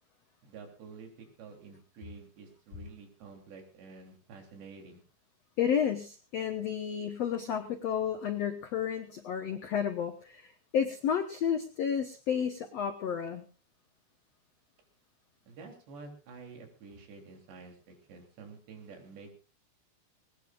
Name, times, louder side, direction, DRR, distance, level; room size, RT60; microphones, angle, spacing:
voice 1, 0.4-5.0 15.5-19.3, right 4 dB, 85° right, 3 dB, 5.7 m, -49 dB
voice 2, 5.6-13.4, left 8 dB, 85° left, 7 dB, 1.4 m, -31 dB
20.0 x 19.5 x 2.5 m, 0.35 s
omnidirectional pair, 4.8 m